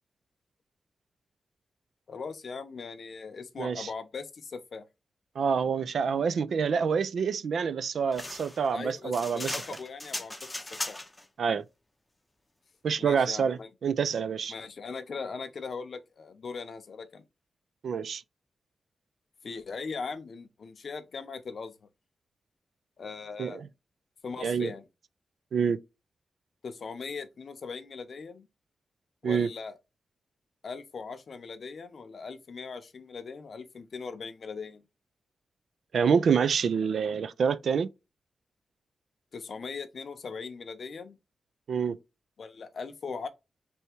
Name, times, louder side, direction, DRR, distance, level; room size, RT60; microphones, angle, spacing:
voice 1, 2.1-4.8 8.7-10.4 10.9-11.0 13.0-13.7 14.5-17.2 19.4-21.9 23.0-23.7 24.2-24.8 26.6-28.5 29.2-29.7 30.6-34.8 39.3-41.2 42.4-43.3, left 5 dB, 55° left, 0.6 m, -39 dB
voice 2, 3.6-3.9 5.4-9.6 11.4-11.6 12.8-14.5 17.8-18.2 23.4-23.7 24.4-24.7 25.5-25.8 29.2-29.5 35.9-37.9 41.7-42.0, right 6 dB, 75° right, 0.3 m, -27 dB
sound 1, 8.1-11.3, left 2 dB, 15° left, 0.6 m, -37 dB
3.4 x 2.7 x 4.3 m
wide cardioid pair, 130°, 0 cm